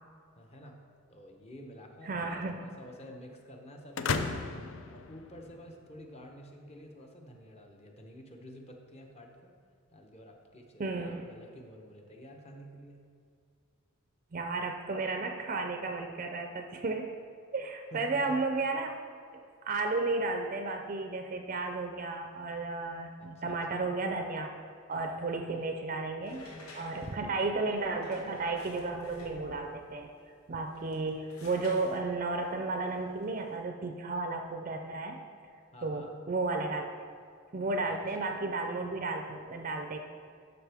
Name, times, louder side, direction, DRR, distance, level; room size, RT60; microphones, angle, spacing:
voice 1, 0.4-0.8 1.1-4.6 4.9-9.5 9.9-13.0 17.9-18.3 23.2-23.9 25.5-25.7 27.2-27.7 35.7-36.2 37.9-38.3, equal, 30° left, 1 dB, 0.9 m, -50 dB
voice 2, 2.0-2.6 10.8-11.2 14.3-17.1 17.5-19.0 19.3-24.5 24.9-30.1 30.5-35.2 35.8-36.9 37.5-40.0, right 3 dB, 35° right, 4 dB, 0.5 m, -33 dB
sound 1, 4.0-5.9, left 4 dB, 60° left, 0.5 m, -34 dB
sound 2, 26.2-29.9 30.6-33.5, left 1 dB, 80° left, 1.6 m, -51 dB
12.0 x 6.0 x 3.5 m, 2.2 s
head